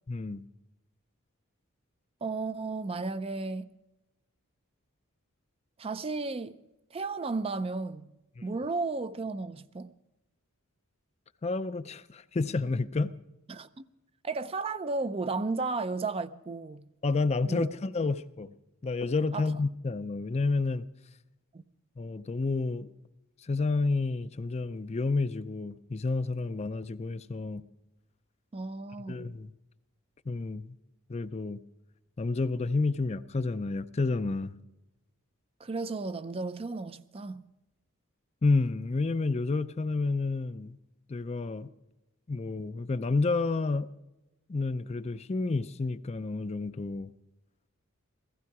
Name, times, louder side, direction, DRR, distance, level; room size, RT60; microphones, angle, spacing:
voice 1, 0.1-0.4 11.4-13.2 17.0-18.5 18.8-20.9 22.0-22.9 23.4-27.6 29.1-29.5 30.3-30.8 31.1-31.6 32.2-34.5 38.4-40.8 41.1-41.7 42.3-43.9 44.5-47.1, left 3 dB, 30° left, 0.4 m, -30 dB
voice 2, 2.2-3.7 5.8-6.6 6.9-8.1 8.4-9.9 13.5-13.7 14.2-16.9 17.5-17.7 19.3-19.5 21.5-21.6 28.5-29.3 35.6-37.4, right 3 dB, 25° right, 0.4 m, -34 dB
16.0 x 15.0 x 4.7 m
head